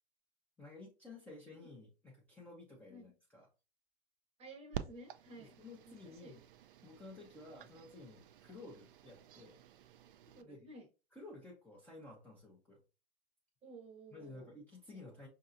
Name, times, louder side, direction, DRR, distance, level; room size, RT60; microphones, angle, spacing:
voice 1, 0.6-3.5 5.4-6.4 6.8-9.6 10.4-10.7 11.1-12.8 14.1-15.3, left 2 dB, 5° left, -4 dB, 0.6 m, -53 dB
voice 2, 4.4-5.5 5.9-6.3 10.3-10.9 13.6-14.5 14.9-15.1, right 1 dB, 20° right, 4 dB, 0.9 m, -54 dB
sound 1, 4.7-10.4, right 10 dB, 50° right, 0.4 m, -50 dB
5.3 x 2.8 x 2.5 m, 0.31 s
figure-of-eight pair, 105°, 34 cm